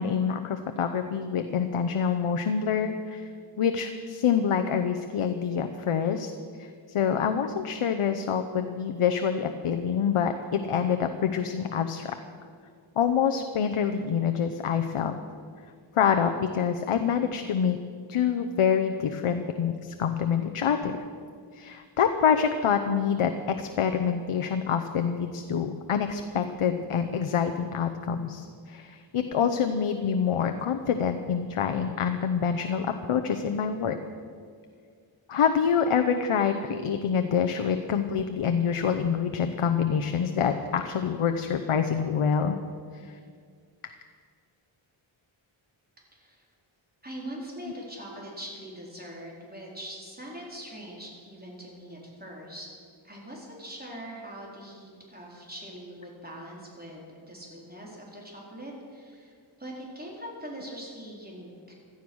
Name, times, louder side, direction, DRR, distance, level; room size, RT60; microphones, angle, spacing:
voice 1, 0.0-3.3 3.6-6.3 6.6-12.1 13.0-15.2 15.9-17.8 18.1-20.9 21.5-34.0 35.3-42.6 43.0-43.2, left 7 dB, 85° left, 6 dB, 0.9 m, -26 dB
voice 2, 46.1-46.4 47.0-52.7 53.0-61.7, right 1 dB, 20° right, -3 dB, 4.1 m, -42 dB
17.0 x 12.5 x 6.3 m, 2.2 s
wide cardioid pair, 120°, 49 cm